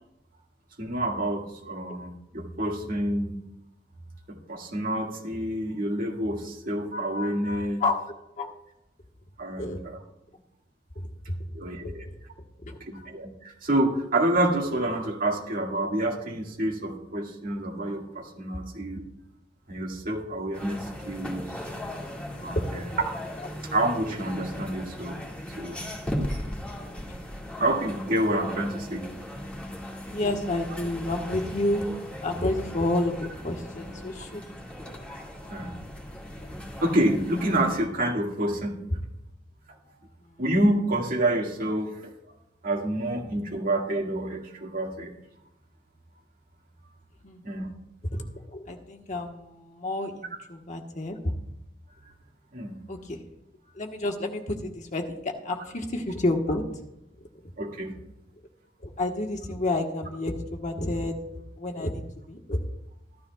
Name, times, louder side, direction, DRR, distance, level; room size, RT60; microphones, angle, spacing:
voice 1, 0.8-3.5 4.3-7.8 9.4-10.0 11.5-12.1 12.8-19.0 19.7-21.6 22.4-22.9 23.7-25.2 25.6-25.9 27.6-29.1 35.5-35.7 36.8-38.9 39.9-40.0 40.4-42.1 42.6-45.1 47.4-47.7 52.0-52.1 52.5-52.8 57.6-58.0, right 1 dB, 50° right, 0 dB, 1.9 m, -28 dB
voice 2, 11.0-11.4 11.8-12.0 22.5-22.6 23.4-23.5 30.1-31.9 32.2-34.4 47.2-47.4 48.1-48.2 48.5-51.3 52.9-53.2 53.7-56.6 58.8-61.2 61.6-62.6, left 2 dB, 40° left, 3 dB, 1.3 m, -30 dB
sound 1, 20.5-37.8, left 1 dB, 5° left, 1.9 m, -38 dB
15.0 x 13.0 x 2.3 m, 0.85 s
head